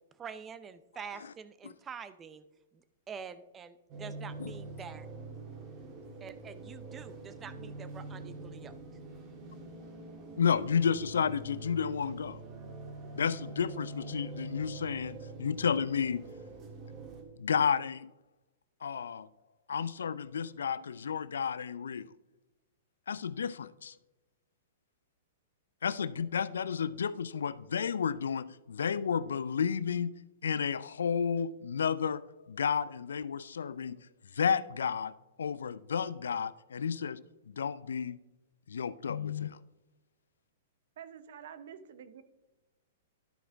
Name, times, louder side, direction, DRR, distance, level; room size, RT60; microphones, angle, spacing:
voice 1, 0.1-2.4 2.7-5.1 6.2-8.7, right 6 dB, 20° right, 0.6 m, -46 dB
sound 1, 3.9-17.2, right 3 dB, 35° right, 1.7 m, -45 dB
voice 2, 10.4-12.4 13.1-16.3 17.4-18.1 18.8-19.3 19.7-22.1 23.1-23.9 25.8-30.1 30.4-34.0 34.3-35.1 35.4-38.2 38.7-39.6, left 7 dB, 85° left, 0.3 m, -32 dB
voice 3, 41.0-42.2, right 8 dB, 65° right, 0.7 m, -48 dB
12.0 x 4.9 x 3.4 m
hypercardioid pair, 130°, 0 cm